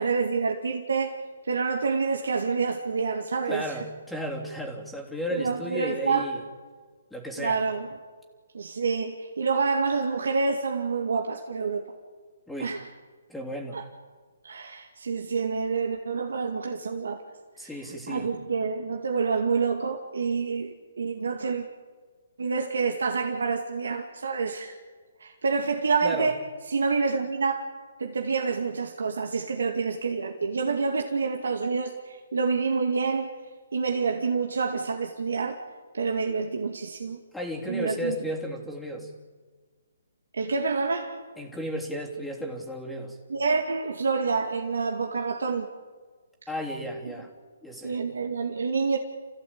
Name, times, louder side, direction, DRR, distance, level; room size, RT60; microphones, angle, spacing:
voice 1, 0.0-3.8 5.3-6.3 7.4-7.9 8.5-11.8 12.6-12.9 13.7-13.9 14.4-17.2 17.6-17.8 18.1-21.7 22.4-24.8 25.2-26.4 26.7-27.7 28.0-33.3 33.7-35.6 35.9-37.2 37.7-38.2 40.3-41.2 43.3-45.7 47.8-49.0, right 4 dB, 80° right, 3 dB, 2.3 m, -27 dB
voice 2, 3.5-6.4 7.1-7.6 12.5-12.8 13.3-13.8 17.6-18.3 26.0-26.3 37.3-39.1 41.4-43.2 46.5-47.3 47.6-48.0, equal, ahead, -1 dB, 3.2 m, -34 dB
29.5 x 15.5 x 8.8 m, 1.5 s
hypercardioid pair, 150°, 0 cm